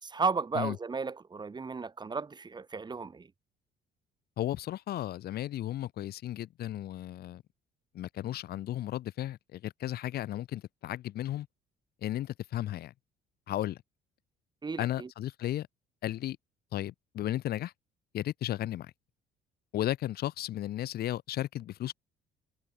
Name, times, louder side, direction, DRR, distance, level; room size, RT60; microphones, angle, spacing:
voice 1, 0.0-3.3 14.6-15.1, right 4 dB, 25° right, 4.8 m, -34 dB
voice 2, 4.4-7.4 7.9-11.5 12.0-12.9 13.5-13.8 14.8-15.7 16.0-16.4 16.7-17.7 18.1-18.9 19.7-21.9, left 13 dB, 65° left, 5.0 m, -34 dB
cardioid pair, 110°, 17 cm